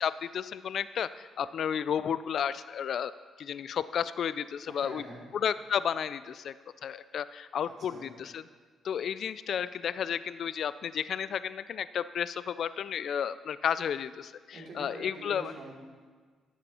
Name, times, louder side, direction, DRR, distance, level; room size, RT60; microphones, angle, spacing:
voice 1, 0.0-3.1 3.4-5.0 5.3-6.5 6.8-8.4 8.8-15.5, left 8 dB, 65° left, 15 dB, 0.3 m, -32 dB
voice 2, 4.7-5.2 7.7-8.1 14.5-15.7, right 2 dB, 65° right, -3 dB, 3.1 m, -45 dB
12.0 x 8.3 x 4.2 m, 1.5 s
cardioid pair, 90°, 0 cm